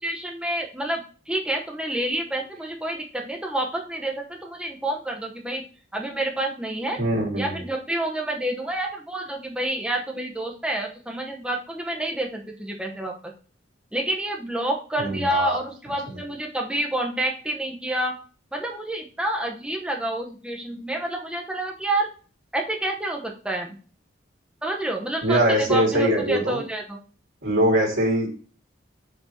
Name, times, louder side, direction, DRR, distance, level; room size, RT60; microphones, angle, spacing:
voice 1, 0.0-5.6 5.9-7.0 7.3-13.1 13.9-18.2 18.5-22.1 22.5-23.8 24.6-27.0, right 1 dB, 5° right, 1 dB, 0.9 m, -28 dB
voice 2, 7.0-7.6 15.0-15.6 16.1-16.2 25.2-26.6 27.4-28.3, right 1 dB, 75° right, -3 dB, 2.0 m, -22 dB
5.5 x 4.6 x 4.3 m, 0.38 s
head